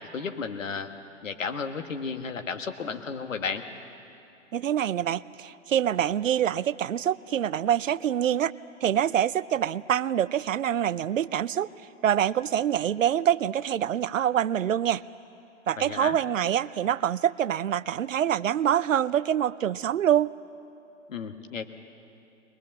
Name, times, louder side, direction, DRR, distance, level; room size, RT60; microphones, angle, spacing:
voice 1, 0.1-0.9 1.2-3.6 15.8-16.2 21.1-21.7, left 5 dB, 75° left, 7 dB, 1.7 m, -33 dB
voice 2, 4.5-8.5 8.8-11.7 12.0-15.0 15.7-20.3, right 10 dB, 75° right, 18 dB, 0.6 m, -25 dB
21.5 x 21.5 x 7.5 m, 2.7 s
hypercardioid pair, 125°, 39 cm